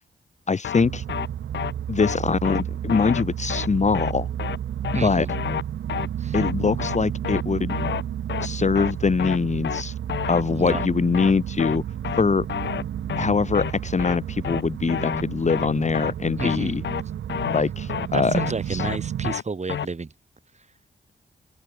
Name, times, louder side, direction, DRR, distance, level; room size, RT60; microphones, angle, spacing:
voice 1, 0.5-1.0 1.9-4.3 5.0-5.3 6.3-7.8 8.4-9.9 10.3-11.8 12.2-12.5 13.2-16.8 17.5-18.4 18.7-18.8, left 5 dB, 40° left, 0.8 m, -23 dB
sound 1, 0.6-0.8 1.1-1.3 1.5-1.7 2.0-2.2 2.4-2.6 2.9-3.2 3.5-3.7 3.9-4.1 4.4-4.6 4.8-5.0 5.3-5.6 5.9-6.1 6.3-6.5 6.8-7.0 7.2-7.4 7.7-8.0 8.3-8.5 8.8-8.9 9.2-9.4 9.6-9.8 10.1-10.4 10.7-10.9 11.1-11.3 11.6-11.8 12.0-12.2 12.5-12.8 13.1-13.3 13.5-13.7 14.0-14.2 14.4-14.6 14.9-15.2 15.5-15.7 15.9-16.1 16.4-16.6 16.8-17.0 17.3-17.6 17.9-18.1 18.4-18.5 18.8-19.0 19.2-19.4 19.7-19.9, left 9 dB, 75° left, 1.0 m, -29 dB
sound 2, 0.8-19.4, right 10 dB, 85° right, 1.1 m, -31 dB
voice 2, 4.9-5.3 6.2-6.4 10.5-10.9 16.4-16.8 18.1-20.1, right 4 dB, 35° right, 1.4 m, -30 dB
cardioid pair, 55°, 19 cm